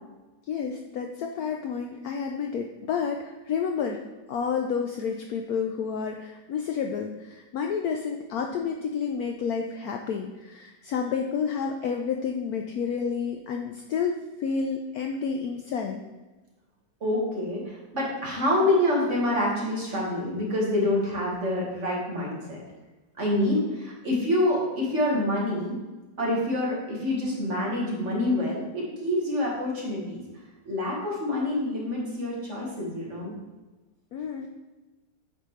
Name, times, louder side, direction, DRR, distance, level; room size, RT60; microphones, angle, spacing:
voice 1, 0.5-4.0 4.3-16.0 34.1-34.5, left 6 dB, 70° left, 3 dB, 0.9 m, -30 dB
voice 2, 17.0-22.6 23.2-25.7 26.2-30.2 30.7-33.3, left 1 dB, 40° right, -4 dB, 1.8 m, -27 dB
8.3 x 5.2 x 3.2 m, 1.2 s
omnidirectional pair, 2.0 m